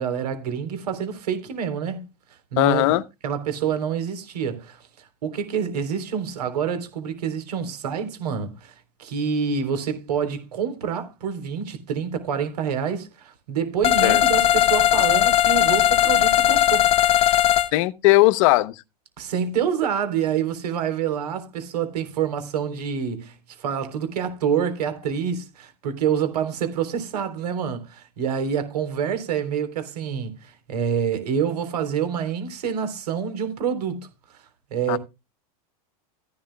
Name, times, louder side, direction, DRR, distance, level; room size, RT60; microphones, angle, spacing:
voice 1, 0.0-2.1 2.5-3.0 3.2-8.7 9.0-16.9 19.2-34.4 34.7-35.0, right 7 dB, 85° right, 3.5 m, -27 dB
voice 2, 2.6-3.0 14.0-14.2 17.7-18.7 34.9-35.0, left 19 dB, 55° left, 0.8 m, -18 dB
sound 1, 13.8-17.7, left 12 dB, 30° left, 1.0 m, -18 dB
14.5 x 11.5 x 2.2 m
supercardioid pair, 135°, 20 cm